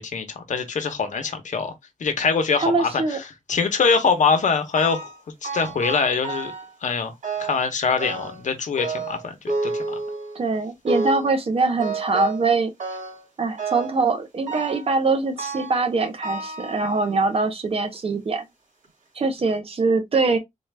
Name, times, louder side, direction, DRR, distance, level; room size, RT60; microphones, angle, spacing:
voice 1, 0.0-1.7 2.0-3.2 3.5-5.1 5.4-6.5 6.8-7.1 7.4-10.0, left 5 dB, 75° left, 0.9 m, -23 dB
voice 2, 2.6-3.2 10.3-12.7 13.4-18.4 19.1-20.4, right 3 dB, 50° right, 0.9 m, -23 dB
sound 1, 4.7-5.2 5.4-6.7 7.2-7.7 8.0-8.5 8.8-10.4 10.9-11.3 11.8-12.5 12.8-13.2 13.6-14.0 14.5-14.9 15.4-15.8 16.2-17.3 17.9-18.0 18.8-18.9 19.4-19.5, right 3 dB, 85° right, 2.3 m, -30 dB
3.9 x 2.5 x 3.3 m
wide cardioid pair, 175°, 13 cm